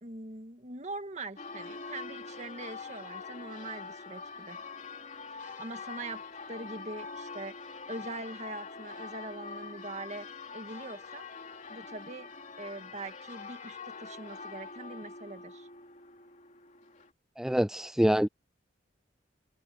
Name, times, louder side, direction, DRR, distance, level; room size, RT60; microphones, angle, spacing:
voice 1, 0.0-4.6 5.3-6.2 6.5-7.5 7.9-10.3 10.5-11.3 11.7-12.3 12.6-15.7, right 2 dB, 40° right, 1.9 m, -42 dB
Church bell, 1.4-17.1, left 4 dB, 45° left, 2.8 m, -44 dB
voice 2, 17.4-18.3, equal, 5° right, 0.3 m, -25 dB
head